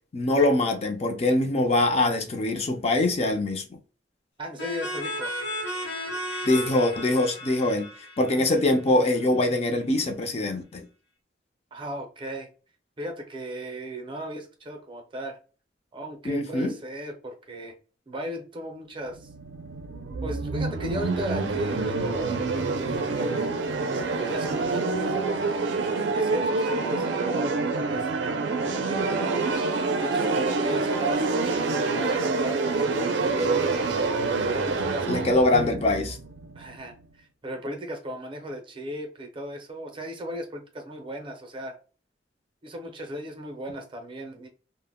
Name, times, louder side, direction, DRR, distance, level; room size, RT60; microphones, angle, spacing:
voice 1, 0.1-3.6 6.5-7.9 8.2-10.9 16.2-16.7 35.1-36.2, left 2 dB, 35° left, 0.4 m, -23 dB
voice 2, 4.4-5.3 11.7-12.5 13.0-15.4 15.9-17.7 18.1-19.3 20.2-22.4 22.8-23.5 24.2-25.4 26.1-28.1 28.5-29.5 30.0-32.8 33.4-33.9 34.4-35.8 36.5-41.8 42.6-44.5, equal, 30° right, 0.5 m, -36 dB
sound 1, 4.6-9.2, equal, 80° left, 0.8 m, -34 dB
sound 2, 19.1-36.9, right 3 dB, 85° right, 0.4 m, -27 dB
2.1 x 2.0 x 3.4 m
head